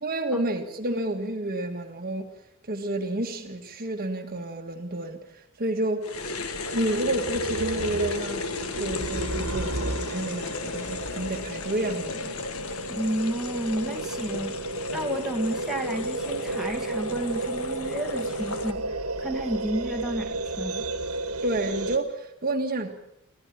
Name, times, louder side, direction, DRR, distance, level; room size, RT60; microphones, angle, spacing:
voice 1, 0.0-2.3 2.6-5.2 5.6-6.1 6.7-8.4 8.8-12.4 21.4-22.9, right 1 dB, 40° right, 1.7 m, -30 dB
sound 1, 6.0-18.7, left 4 dB, 70° left, 1.5 m, -35 dB
sound 2, 6.1-22.0, right 2 dB, 80° right, 2.0 m, -33 dB
voice 2, 12.9-14.6 14.9-20.9, right 1 dB, ahead, 2.1 m, -31 dB
25.5 x 15.5 x 7.3 m
head